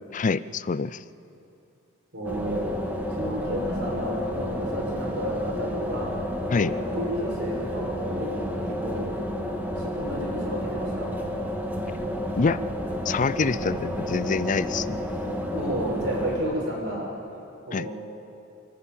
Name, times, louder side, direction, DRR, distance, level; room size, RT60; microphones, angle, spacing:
voice 1, 0.1-1.0 6.5-6.7 12.4-12.6 13.1-15.0 17.7-17.9, left 4 dB, 35° left, 16 dB, 0.4 m, -25 dB
voice 2, 2.1-2.8 3.1-6.1 6.5-8.4 8.7-9.1 9.8-11.1 15.5-17.1 17.7-17.9, right 1 dB, 55° right, -2 dB, 6.2 m, -31 dB
sound 1, 2.2-16.4, left 1 dB, 10° right, 1.9 m, -31 dB
27.0 x 11.5 x 9.1 m, 2.7 s
head